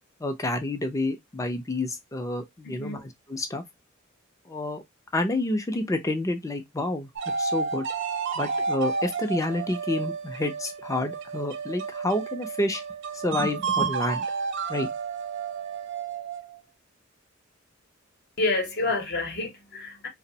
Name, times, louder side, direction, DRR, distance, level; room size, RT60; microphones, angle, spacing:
voice 1, 0.2-3.6 4.5-4.8 5.1-7.1 7.4-7.9 8.4-12.8 13.1-14.2 14.7-14.9, left 2 dB, 15° left, 0.4 m, -29 dB
voice 2, 2.6-3.0 18.4-20.1, left 2 dB, 55° left, 0.8 m, -28 dB
sound 1, 7.2-16.6, right 5 dB, 60° right, 0.4 m, -31 dB
2.7 x 2.0 x 2.6 m
head